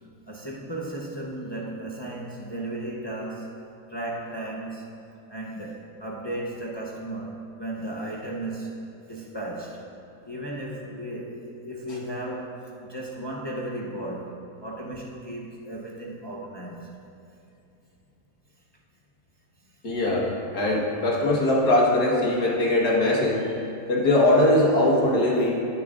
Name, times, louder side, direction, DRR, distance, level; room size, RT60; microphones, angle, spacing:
voice 1, 0.3-3.6 3.9-5.0 5.3-8.8 9.1-9.9 10.2-16.9, right 1 dB, 40° left, -4 dB, 0.3 m, -35 dB
voice 2, 19.8-23.5 23.9-25.6, left 1 dB, 60° left, -3 dB, 2.1 m, -21 dB
19.5 x 7.3 x 2.5 m, 2.7 s
omnidirectional pair, 1.9 m